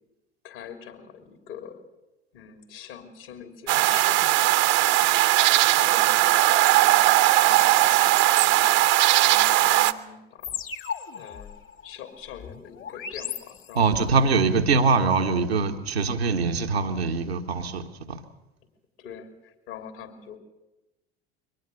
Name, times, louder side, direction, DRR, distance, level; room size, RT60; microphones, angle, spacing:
voice 1, 0.4-1.8 2.3-8.7 9.2-10.6 11.1-11.5 11.8-14.0 14.7-14.8 19.0-20.4, left 7 dB, 70° left, 7 dB, 3.4 m, -44 dB
sound 1, 3.7-9.9, right 15 dB, 55° right, 1.0 m, -19 dB
sound 2, 10.4-14.1, left 7 dB, 45° left, 1.7 m, -37 dB
voice 2, 13.7-18.2, right 4 dB, 85° right, 5 dB, 1.5 m, -23 dB
23.0 x 19.0 x 7.1 m, 1.0 s
hypercardioid pair, 70°, 31 cm